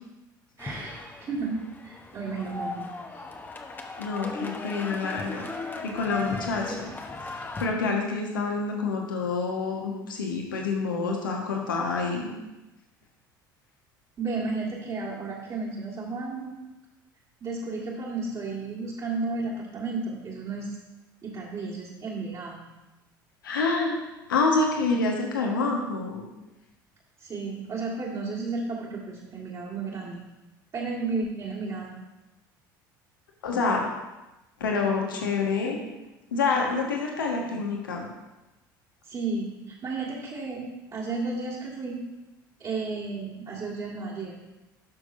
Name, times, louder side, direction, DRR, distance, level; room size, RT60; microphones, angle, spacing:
sound 1, 0.6-7.7, left 3 dB, 15° left, 0.9 m, -37 dB
voice 1, 0.6-2.9 3.1-3.2 14.2-16.6 17.4-20.7 21.2-22.7 27.2-30.2 30.7-32.0 37.4-37.6 39.0-40.6 40.9-42.0 42.6-44.3, right 3 dB, 35° right, -6 dB, 1.8 m, -33 dB
voice 2, 4.0-5.5 5.8-6.9 7.3-12.3 23.4-24.0 24.3-26.3 33.4-33.8 34.6-35.8 36.3-38.1, left 4 dB, 75° left, 0 dB, 1.4 m, -27 dB
12.0 x 6.3 x 2.6 m, 1.0 s
figure-of-eight pair, 65°, 11 cm